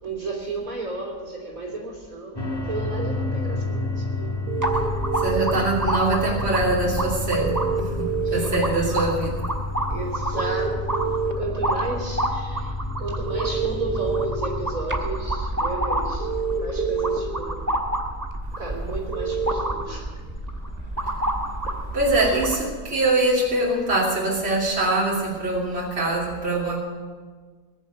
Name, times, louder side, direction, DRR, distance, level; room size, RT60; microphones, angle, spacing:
voice 1, 0.0-4.3 8.2-8.6 8.9-9.0 9.9-12.7 13.0-16.3 16.6-17.6 18.5-20.1 21.6-21.7 22.3-22.4, right 3 dB, 55° right, -2 dB, 3.8 m, -33 dB
sound 1, 2.4-14.7, left 3 dB, 15° left, 1.7 m, -31 dB
sound 2, 4.5-5.5 7.4-8.4 10.3-11.3 13.3-14.2 16.2-17.2 19.1-19.5, right 8 dB, 90° right, 1.7 m, -27 dB
sound 3, 4.6-22.6, right 1 dB, 10° right, 1.4 m, -29 dB
voice 2, 5.1-9.5 20.8-21.7 21.9-26.8, right 2 dB, 40° right, -5 dB, 3.3 m, -24 dB
20.5 x 7.2 x 9.2 m, 1.5 s
omnidirectional pair, 1.7 m